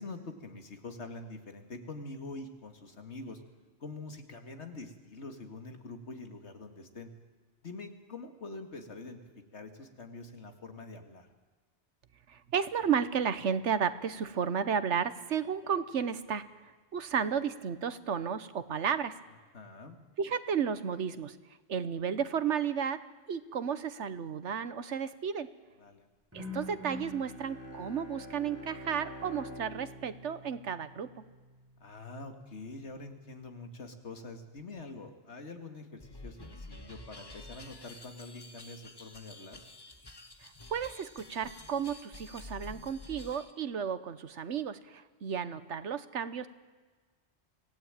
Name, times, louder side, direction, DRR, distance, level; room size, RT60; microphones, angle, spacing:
voice 1, 0.0-3.4 3.8-7.1 7.6-9.2 9.5-11.3 19.5-20.0 25.8-26.0 31.8-39.6, left 3 dB, 75° left, 6 dB, 2.4 m, -45 dB
voice 2, 12.3-19.1 20.2-21.4 21.7-23.0 23.3-25.5 26.3-31.2 40.4-46.5, right 7 dB, 85° right, 13 dB, 1.4 m, -33 dB
Bowed string instrument, 26.3-31.4, left 1 dB, 10° right, 4.4 m, -45 dB
sound 1, 36.0-43.5, left 2 dB, 20° left, 1.3 m, -49 dB
25.0 x 17.0 x 9.0 m, 1.4 s
omnidirectional pair, 1.2 m